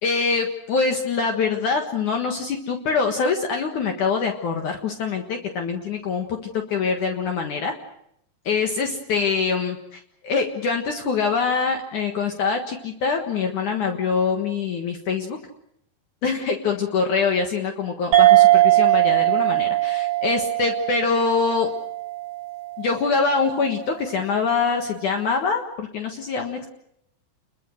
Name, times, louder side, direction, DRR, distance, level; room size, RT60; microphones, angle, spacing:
voice 1, 0.0-6.4 6.7-7.7 8.5-15.4 16.2-21.7 22.8-26.7, left 5 dB, 60° left, 3 dB, 2.8 m, -24 dB
sound 1, 18.1-23.0, right 16 dB, 60° right, 1.9 m, -19 dB
29.0 x 22.5 x 6.4 m, 0.76 s
omnidirectional pair, 4.1 m